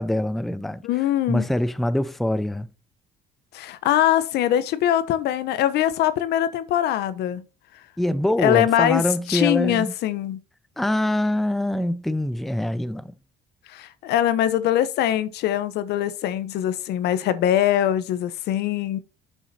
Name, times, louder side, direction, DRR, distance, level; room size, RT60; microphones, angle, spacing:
voice 1, 0.0-0.8 1.3-2.7 8.0-9.9 10.8-13.1, left 1 dB, ahead, 0.4 m, -24 dB
voice 2, 0.8-1.5 3.5-7.4 8.4-9.0 9.3-10.4 13.7-19.0, left 12 dB, 80° left, 0.9 m, -22 dB
6.6 x 6.3 x 4.2 m
cardioid pair, 110°, 17 cm